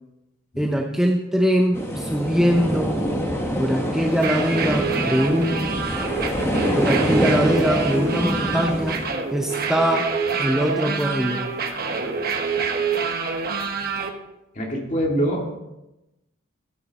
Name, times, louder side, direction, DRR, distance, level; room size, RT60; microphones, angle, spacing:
voice 1, 0.6-2.9 3.6-5.7 6.8-9.0 9.3-10.1 10.4-11.5, equal, 5° right, 1 dB, 0.7 m, -22 dB
sound 1, 1.7-9.1, equal, 10° left, 1.4 m, -25 dB
sound 2, 4.1-14.1, right 5 dB, 45° right, 1.2 m, -26 dB
voice 2, 14.5-15.6, right 1 dB, 35° left, 0 dB, 2.4 m, -24 dB
14.5 x 8.5 x 4.2 m, 0.96 s
head